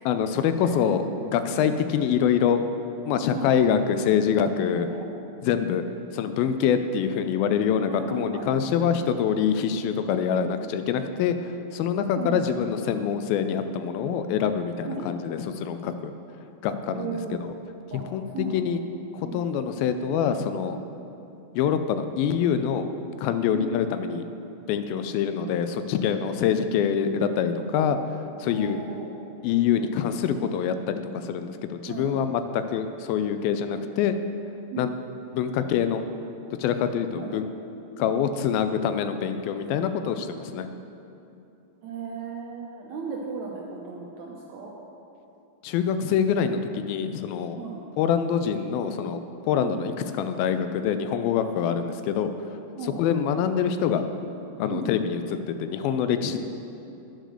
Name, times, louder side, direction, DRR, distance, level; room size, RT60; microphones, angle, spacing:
voice 1, 0.1-1.0 1.3-2.6 3.1-4.9 5.4-5.8 6.1-16.1 16.6-17.5 18.1-18.8 19.1-20.8 21.5-22.9 23.2-24.2 24.7-28.0 28.4-28.8 29.4-34.2 34.8-34.9 35.3-36.0 36.6-37.5 38.0-40.7 45.6-47.6 48.0-52.3 52.8-54.1 54.6-56.4, left 8 dB, 85° left, 9 dB, 2.4 m, -25 dB
voice 2, 4.8-5.2 7.9-8.5 12.2-12.5 14.9-15.0 16.9-17.4 17.9-18.6 19.2-19.5 23.5-23.7 28.4-29.2 31.9-32.3 34.7-35.0 37.2-37.4 41.8-44.7 47.6-47.9 49.6-49.8 52.8-53.0 54.7-54.9 56.3-56.4, right 4 dB, 75° right, -2 dB, 1.7 m, -36 dB
10.0 x 6.6 x 6.4 m, 2.8 s
omnidirectional pair, 4.2 m